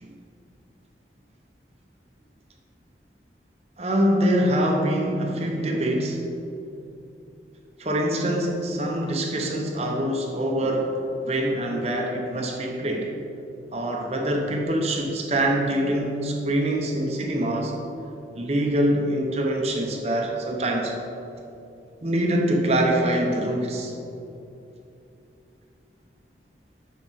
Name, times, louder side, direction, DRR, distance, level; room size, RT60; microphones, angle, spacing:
voice 1, 3.8-6.3 7.8-13.1 13.7-17.8 18.4-20.9 22.0-23.9, right 1 dB, 35° right, 0 dB, 0.7 m, -24 dB
8.2 x 6.0 x 3.9 m, 2.7 s
head